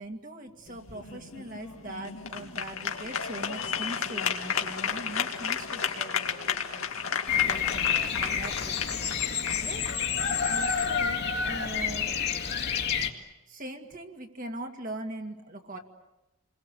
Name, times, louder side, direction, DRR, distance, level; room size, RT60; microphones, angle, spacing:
voice 1, 0.0-6.9 7.4-8.9 9.6-9.9 10.4-12.3 13.5-15.8, right 1 dB, 40° right, 3 dB, 2.3 m, -41 dB
sound 1, 0.7-10.8, left 7 dB, 75° left, 2.2 m, -33 dB
Bird vocalization bird call bird song, 7.3-13.1, left 7 dB, 50° left, 2.3 m, -28 dB
29.5 x 22.0 x 8.5 m, 0.99 s
head